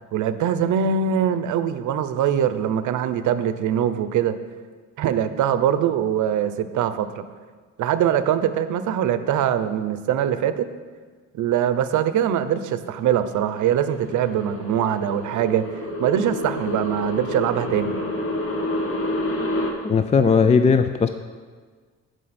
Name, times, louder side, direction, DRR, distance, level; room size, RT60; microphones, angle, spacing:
voice 1, 0.1-4.4 5.0-7.2 7.8-10.7 11.3-18.0, right 9 dB, 75° right, 12 dB, 0.7 m, -22 dB
sound 1, 13.0-19.7, left 1 dB, 45° left, 1.6 m, -29 dB
voice 2, 19.8-21.1, left 5 dB, 25° left, 9 dB, 0.4 m, -17 dB
15.0 x 5.1 x 4.2 m, 1.5 s
cardioid pair, 90°, 30 cm